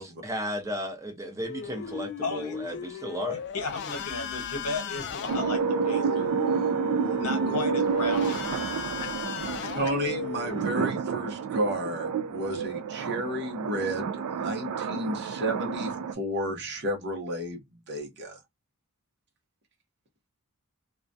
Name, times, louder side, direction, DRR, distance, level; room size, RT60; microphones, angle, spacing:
voice 1, 0.0-3.4, equal, 15° right, 0.6 m, -34 dB
sound 1, 1.4-10.6, left 6 dB, 50° left, 0.4 m, -36 dB
voice 2, 2.2-2.6 3.3-6.7 7.1-8.4 9.0-9.7, left 3 dB, 75° left, 1.0 m, -35 dB
sound 2, 5.3-16.1, right 6 dB, 75° right, 0.3 m, -30 dB
voice 3, 9.7-17.6 17.9-18.4, right 1 dB, 50° right, 0.8 m, -32 dB
2.3 x 2.1 x 2.6 m
head